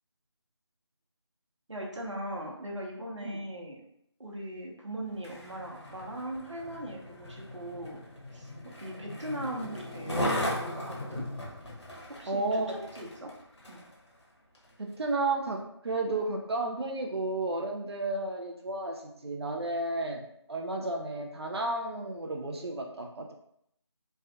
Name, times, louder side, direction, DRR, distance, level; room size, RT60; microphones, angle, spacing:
voice 1, 1.7-3.8 4.2-8.0 8.3-8.5 8.8-11.3 12.2-13.3 13.7-13.8, right 1 dB, 85° right, -1 dB, 0.9 m, -39 dB
Skateboard, 5.1-13.9 14.5-14.7, left 1 dB, 70° left, 1.0 m, -38 dB
voice 2, 12.3-12.8 14.8-23.3, right 2 dB, 60° right, 2 dB, 0.4 m, -32 dB
3.2 x 2.2 x 2.8 m, 0.73 s
figure-of-eight pair, 165°, 15 cm